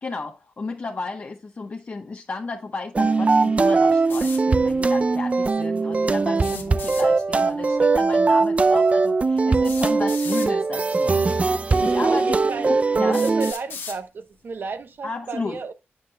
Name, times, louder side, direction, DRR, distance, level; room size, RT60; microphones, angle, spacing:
voice 1, 0.0-12.4 12.7-13.2 15.0-15.6, left 3 dB, 45° left, 1.0 m, -33 dB
sound 1, 3.0-13.5, right 3 dB, 35° right, 0.4 m, -20 dB
sound 2, 4.1-4.4 6.4-7.1 8.5-8.6 9.6-10.5 11.5-11.6 12.3-12.4 13.1-14.0, left 5 dB, 75° left, 1.3 m, -36 dB
voice 2, 12.1-12.8 13.1-15.7, right 4 dB, 65° right, 0.8 m, -32 dB
8.6 x 7.1 x 2.2 m
cardioid pair, 80°, 4 cm